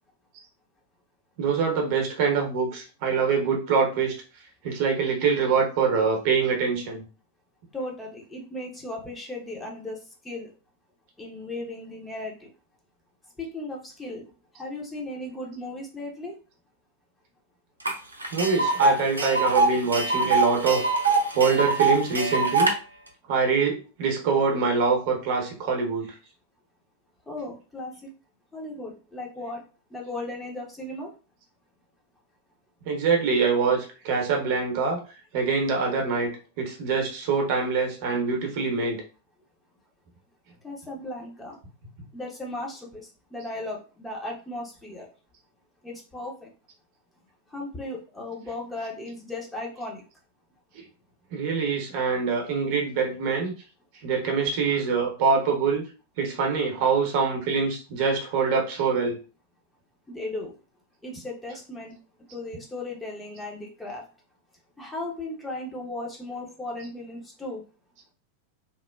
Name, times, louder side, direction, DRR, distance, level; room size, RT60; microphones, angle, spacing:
voice 1, 1.4-4.1 4.6-7.0 18.3-20.8 21.3-22.7 23.3-26.1 32.9-35.0 35.3-36.3 36.6-39.0 51.3-53.5 54.0-55.8 56.2-59.2, right 5 dB, 45° right, 1 dB, 0.8 m, -24 dB
voice 2, 7.7-10.0 10.2-10.5 11.2-12.5 13.4-14.3 14.5-16.4 27.3-27.9 28.5-29.6 29.9-31.1 40.6-41.6 42.1-45.1 45.8-46.5 47.5-50.0 60.1-60.5 61.0-61.9 62.3-64.0 64.8-67.6, left 2 dB, 10° left, -1 dB, 0.7 m, -36 dB
Tick, 17.9-18.0 18.2-22.7, right 3 dB, 80° right, 0.4 m, -23 dB
3.0 x 2.1 x 2.2 m, 0.35 s
figure-of-eight pair, 90°, 0 cm